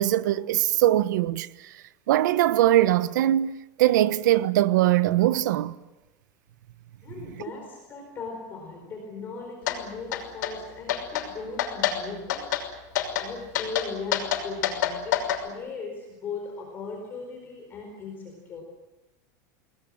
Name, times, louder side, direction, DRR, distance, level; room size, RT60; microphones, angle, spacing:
voice 1, 0.0-1.5 2.1-3.5 3.8-5.8, right 14 dB, 85° right, 1.1 m, -21 dB
voice 2, 7.0-12.4 13.2-18.6, left 4 dB, 20° left, 4.4 m, -38 dB
sound 1, 9.7-9.8 10.1-10.5 10.9-11.3 11.6-12.0 12.3-12.6 13.0-13.3 13.5-15.4, left 11 dB, 85° left, 6.0 m, -26 dB
28.5 x 20.5 x 7.7 m
supercardioid pair, 180°, 10 cm